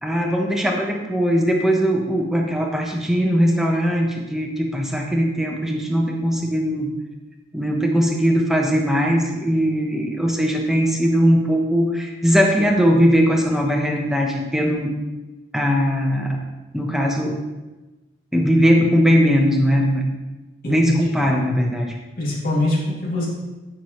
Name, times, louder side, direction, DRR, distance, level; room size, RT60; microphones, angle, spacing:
voice 1, 0.0-6.9 7.5-14.9 15.5-16.4 16.7-17.4 18.3-20.0 20.7-22.0, equal, ahead, 0 dB, 1.1 m, -19 dB
voice 2, 20.6-21.2 22.2-23.3, left 1 dB, 50° left, -5 dB, 2.7 m, -23 dB
13.5 x 6.1 x 3.2 m, 1.1 s
head